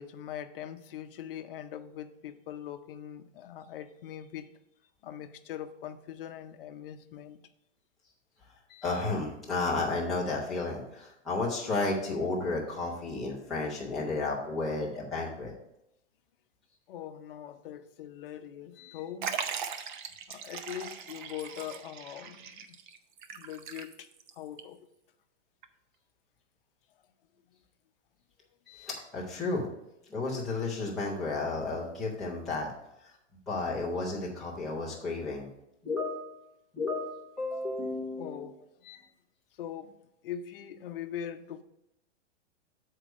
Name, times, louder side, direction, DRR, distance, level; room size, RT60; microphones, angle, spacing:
voice 1, 0.0-4.5 5.0-7.4 16.9-19.4 20.3-22.5 23.3-24.1 24.4-24.8 38.2-38.6 39.6-39.9 40.2-41.6, left 10 dB, 50° left, 9 dB, 0.6 m, -41 dB
voice 2, 8.7-15.5 18.8-19.0 28.7-29.6 30.1-32.7 33.5-35.5 35.8-36.4 36.7-38.4 38.8-39.0, left 3 dB, ahead, -9 dB, 0.3 m, -32 dB
Liquid, 19.2-24.3 24.6-24.7 25.6-25.7, right 7 dB, 45° right, 0.6 m, -39 dB
7.5 x 4.6 x 5.1 m, 0.85 s
supercardioid pair, 165°, 36 cm